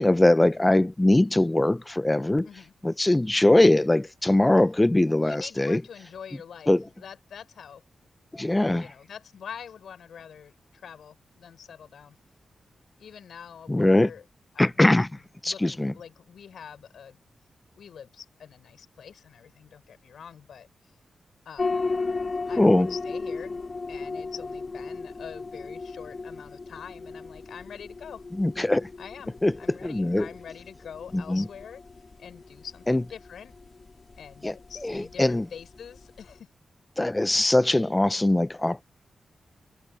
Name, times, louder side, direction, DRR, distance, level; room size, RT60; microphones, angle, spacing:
voice 1, 0.0-2.5 2.8-5.8 6.7-6.8 8.3-8.9 13.7-14.1 14.6-15.1 15.4-15.9 22.6-22.9 28.4-28.9 29.4-29.5 29.8-30.3 31.1-31.4 32.9-33.0 34.4-34.5 34.8-34.9 35.2-35.5 37.0-38.8, left 1 dB, 15° left, 0.6 m, -21 dB
voice 2, 5.2-7.8 8.3-12.2 13.0-14.2 14.5-17.2 17.7-20.7 21.4-21.8 22.5-23.6 23.9-28.2 29.0-31.8 32.2-33.5 34.2-36.5, left 7 dB, 85° left, 6.1 m, -45 dB
sound 1, 21.6-36.4, left 3 dB, 40° left, 3.4 m, -36 dB
cardioid pair, 80°, 0 cm